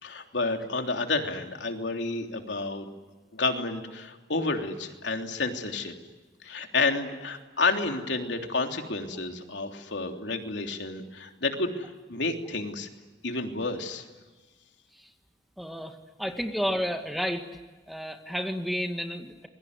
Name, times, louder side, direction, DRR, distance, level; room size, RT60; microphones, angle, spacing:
voice 1, 0.0-2.9 3.3-5.9 6.4-12.9 13.2-14.1, left 3 dB, 85° left, 4 dB, 3.3 m, -30 dB
voice 2, 15.6-17.5 17.9-19.5, equal, ahead, 5 dB, 2.0 m, -31 dB
27.5 x 22.0 x 9.7 m, 1.2 s
head